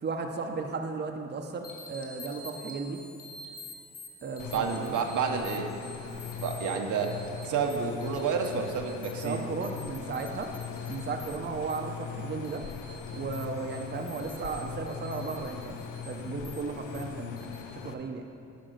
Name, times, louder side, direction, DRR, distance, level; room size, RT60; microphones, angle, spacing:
voice 1, 0.0-3.0 4.2-5.0 9.2-10.5 10.9-12.6 13.1-15.8 16.0-17.6 17.8-18.3, right 4 dB, 35° right, 3 dB, 0.7 m, -35 dB
sound 1, 1.6-17.6, left 2 dB, 30° left, 1.8 m, -49 dB
sound 2, 4.4-17.9, left 7 dB, 90° left, 0.7 m, -40 dB
voice 2, 4.5-5.7 6.4-9.5, right 6 dB, 80° right, 3 dB, 1.0 m, -30 dB
10.5 x 5.2 x 6.6 m, 2.5 s
cardioid pair, 120°, 30 cm